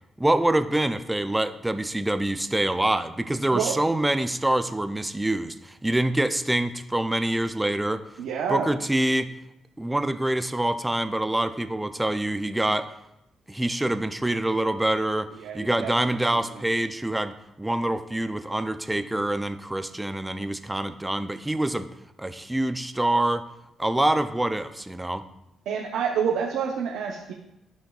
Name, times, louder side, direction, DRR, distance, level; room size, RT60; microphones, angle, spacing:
voice 1, 0.2-8.0 8.5-9.3 9.8-12.9 13.5-15.3 15.5-21.9 22.2-23.5 23.8-25.2, right 1 dB, 10° right, 11 dB, 0.4 m, -25 dB
voice 2, 8.2-8.7 15.4-16.6 25.7-27.3, right 7 dB, 85° right, -1 dB, 0.8 m, -28 dB
14.0 x 5.3 x 2.4 m, 0.85 s
cardioid pair, 90°, 0 cm